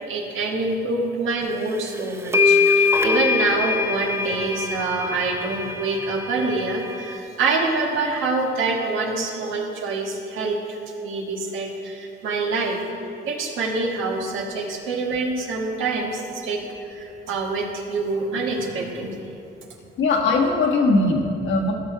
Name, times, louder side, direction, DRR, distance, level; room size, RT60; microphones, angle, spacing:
voice 1, 0.1-12.8 13.3-16.6 16.9-19.3, right 3 dB, 85° right, 0 dB, 1.6 m, -26 dB
sound 1, 1.7-1.8 2.3-7.2, left 4 dB, 10° right, 0.6 m, -23 dB
voice 2, 20.0-21.7, left 3 dB, 80° left, 0 dB, 1.6 m, -20 dB
14.5 x 6.3 x 4.8 m, 2.7 s
cardioid pair, 90°, 20 cm